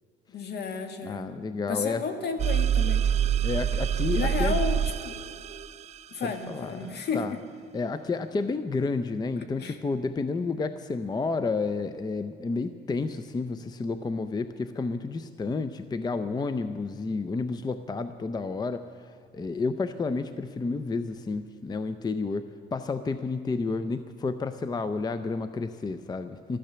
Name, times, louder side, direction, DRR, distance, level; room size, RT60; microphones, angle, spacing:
voice 1, 0.3-1.3 1.7-3.0 4.0-5.1 6.1-7.4 9.6-9.8, left 5 dB, 60° left, 7 dB, 1.6 m, -32 dB
voice 2, 1.0-2.0 3.4-4.6 6.2-7.3 7.7-26.6, left 4 dB, 20° left, 11 dB, 0.5 m, -31 dB
sound 1, 2.4-6.0, right 9 dB, 35° right, 0.4 m, -26 dB
14.5 x 12.0 x 6.8 m, 2.3 s
cardioid pair, 115°, 19 cm